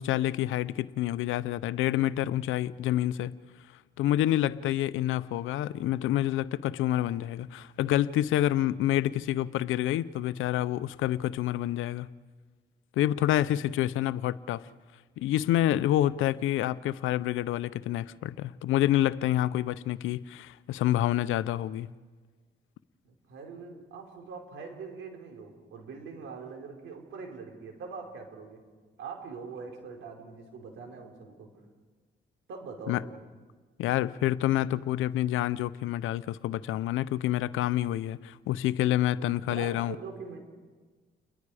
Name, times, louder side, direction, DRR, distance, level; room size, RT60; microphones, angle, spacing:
voice 1, 0.0-3.3 4.0-12.1 13.0-14.6 15.2-21.9 32.9-33.0 33.8-40.0, left 13 dB, 85° left, 16 dB, 0.7 m, -28 dB
voice 2, 23.0-28.6 29.0-31.5 32.5-33.2 39.1-40.4, right 5 dB, 80° right, 2 dB, 4.5 m, -43 dB
29.5 x 22.0 x 5.0 m, 1.4 s
cardioid pair, 90°, 20 cm